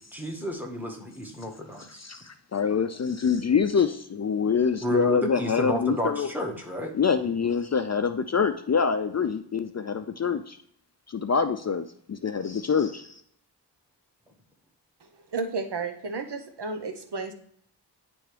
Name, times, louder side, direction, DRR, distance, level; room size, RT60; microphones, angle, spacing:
voice 1, 0.1-2.0 4.8-6.9, equal, 5° right, 2 dB, 1.5 m, -31 dB
voice 2, 2.0-6.3 6.9-10.6 11.1-13.2, left 6 dB, 40° left, 10 dB, 0.4 m, -25 dB
voice 3, 15.0-17.3, right 4 dB, 70° right, 7 dB, 0.9 m, -33 dB
10.0 x 3.5 x 3.3 m, 0.66 s
wide cardioid pair, 55°, 42 cm